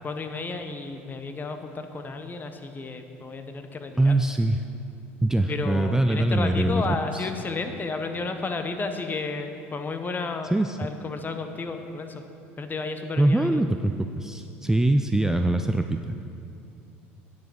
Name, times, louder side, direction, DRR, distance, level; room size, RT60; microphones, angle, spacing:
voice 1, 0.0-4.1 5.5-10.5 10.8-12.3 12.6-13.6, left 3 dB, 25° left, 7 dB, 0.9 m, -32 dB
voice 2, 4.0-4.6 5.2-7.3 10.5-10.8 13.2-16.1, right 1 dB, 5° right, 7 dB, 0.4 m, -23 dB
9.8 x 6.1 x 6.2 m, 2.6 s
hypercardioid pair, 75°, 7 cm